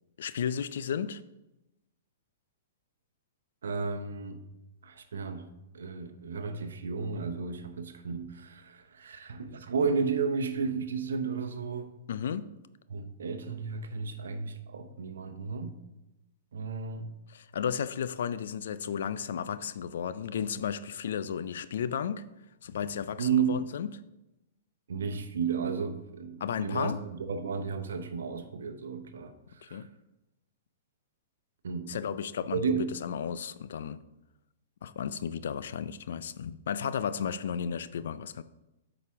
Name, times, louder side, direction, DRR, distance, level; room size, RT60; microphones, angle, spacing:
voice 1, 0.2-1.2 12.1-12.5 17.3-22.3 22.6-23.9 26.4-27.0 29.7-29.9 31.9-32.6 32.9-34.0 34.8-38.4, left 8 dB, 70° left, 0.4 m, -33 dB
voice 2, 3.6-4.4 4.8-5.5 5.7-11.9 12.9-15.7 16.5-17.1 23.2-23.6 24.9-29.9 31.6-32.0 32.5-32.9, right 5 dB, 80° right, 0.8 m, -33 dB
8.3 x 5.0 x 3.6 m
hypercardioid pair, 120°, 0 cm